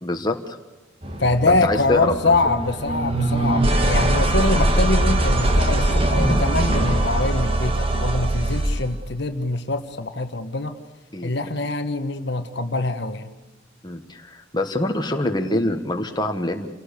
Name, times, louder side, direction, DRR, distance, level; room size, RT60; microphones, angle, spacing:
voice 1, 0.0-0.6 1.5-2.3 4.5-4.7 11.1-11.3 13.8-16.7, left 1 dB, 20° left, 4 dB, 1.5 m, -25 dB
sound 1, 1.0-8.9, right 1 dB, 25° right, 1.8 m, -21 dB
voice 2, 1.2-10.8 11.2-13.3, left 2 dB, 55° left, 8 dB, 1.3 m, -24 dB
28.0 x 18.0 x 6.7 m, 1.2 s
head